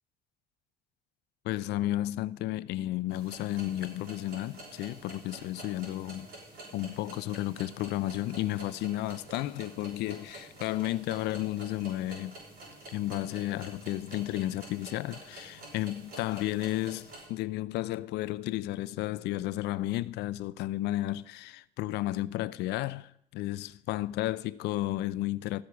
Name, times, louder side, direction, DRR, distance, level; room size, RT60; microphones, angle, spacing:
voice 1, 1.4-6.3 6.7-12.4 12.9-25.6, left 15 dB, 85° left, 0.5 m, -33 dB
sound 1, 3.1-17.3, right 2 dB, 70° right, 6.2 m, -48 dB
13.5 x 8.2 x 6.1 m
cardioid pair, 110°, 17 cm